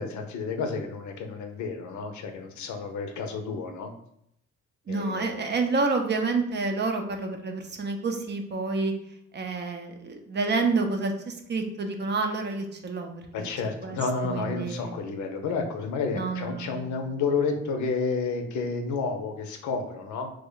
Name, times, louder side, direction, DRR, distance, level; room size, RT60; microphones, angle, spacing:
voice 1, 0.0-3.9 4.9-5.5 13.3-20.3, left 4 dB, 70° left, 5 dB, 0.6 m, -30 dB
voice 2, 4.9-8.9 9.3-13.1 13.4-13.5 13.8-14.0 14.2-14.9 16.1-16.9, right 3 dB, 35° right, 4 dB, 0.5 m, -28 dB
3.1 x 2.2 x 3.7 m, 0.75 s
cardioid pair, 90°, 30 cm